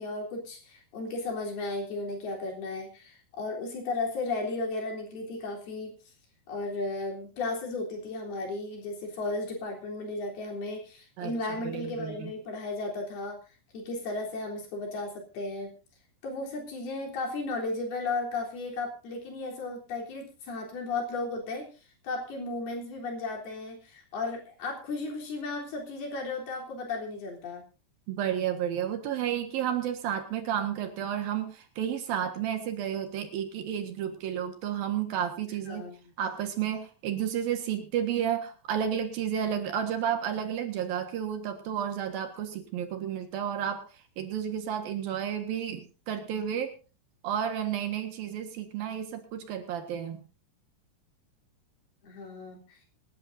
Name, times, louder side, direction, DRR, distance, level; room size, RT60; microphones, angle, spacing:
voice 1, 0.0-6.0 6.5-13.4 13.7-15.7 16.2-21.7 22.0-27.6 35.7-36.0 52.0-52.6, left 3 dB, 70° left, 0 dB, 5.5 m, -34 dB
voice 2, 11.6-12.3 28.1-35.9 36.2-46.7 47.2-50.2, right 9 dB, 65° right, 6 dB, 3.2 m, -31 dB
26.5 x 11.0 x 2.7 m, 0.33 s
omnidirectional pair, 4.7 m